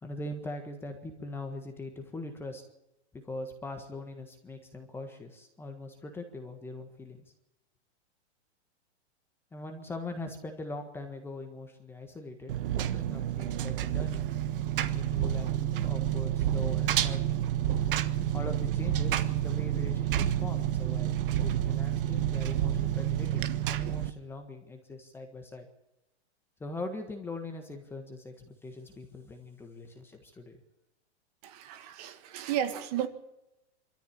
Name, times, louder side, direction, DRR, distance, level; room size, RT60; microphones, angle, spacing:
voice 1, 0.0-2.6 3.1-7.2 9.5-14.3 14.9-17.4 18.3-21.1 21.4-25.7 26.6-30.6, left 2 dB, 5° left, 5 dB, 1.6 m, -41 dB
Engine, 12.5-24.1, right 11 dB, 50° right, 1.4 m, -29 dB
voice 2, 31.4-33.1, right 10 dB, 35° right, 9 dB, 1.8 m, -33 dB
24.5 x 13.5 x 8.8 m, 0.92 s
hypercardioid pair, 165°, 34 cm